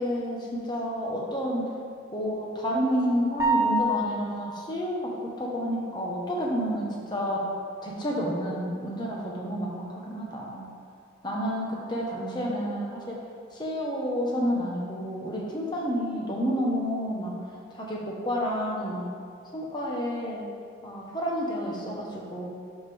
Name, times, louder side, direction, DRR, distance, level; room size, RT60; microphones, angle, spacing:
voice 1, 0.0-1.7 2.1-7.5 7.8-10.7 11.2-13.2 13.5-17.3 17.7-19.0 19.5-20.4 20.8-22.5, equal, 20° left, -3 dB, 1.1 m, -30 dB
sound 1, 3.4-4.5, right 1 dB, 15° right, 1.2 m, -25 dB
10.0 x 5.1 x 3.5 m, 2.2 s
head